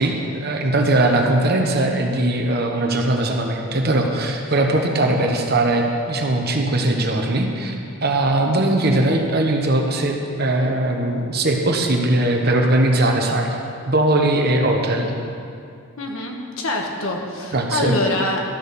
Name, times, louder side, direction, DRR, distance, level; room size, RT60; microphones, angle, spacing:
voice 1, 0.0-7.8 8.0-13.5 13.8-15.1 17.5-18.0, right 1 dB, 45° right, 2 dB, 1.1 m, -20 dB
voice 2, 16.0-18.4, left 1 dB, 70° left, 1 dB, 1.4 m, -25 dB
13.0 x 6.3 x 6.9 m, 2.5 s
head